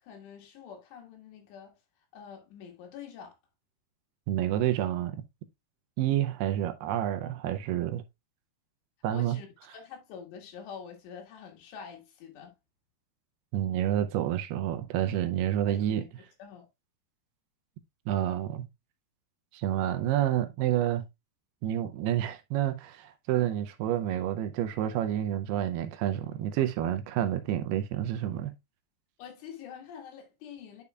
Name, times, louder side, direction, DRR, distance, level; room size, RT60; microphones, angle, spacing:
voice 1, 0.0-1.8 2.1-3.4 9.1-12.6 15.7-16.1 16.4-16.7 29.2-30.8, left 7 dB, 85° left, 3.9 m, -46 dB
voice 2, 4.3-5.3 6.0-8.0 9.0-9.4 13.5-16.1 18.1-18.7 19.5-21.0 21.6-28.5, right 11 dB, 80° right, 2.5 m, -29 dB
9.7 x 5.3 x 2.3 m
omnidirectional pair, 4.8 m